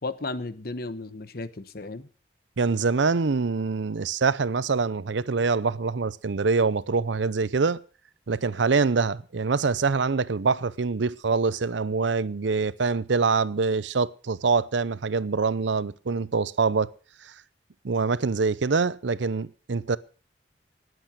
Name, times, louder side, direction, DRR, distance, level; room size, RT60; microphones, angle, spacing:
voice 1, 0.0-2.1, left 2 dB, 55° left, 1.1 m, -34 dB
voice 2, 2.6-7.8 8.3-16.9 17.2-17.3 17.8-20.0, right 4 dB, 80° right, 0.6 m, -25 dB
19.5 x 8.1 x 6.1 m
head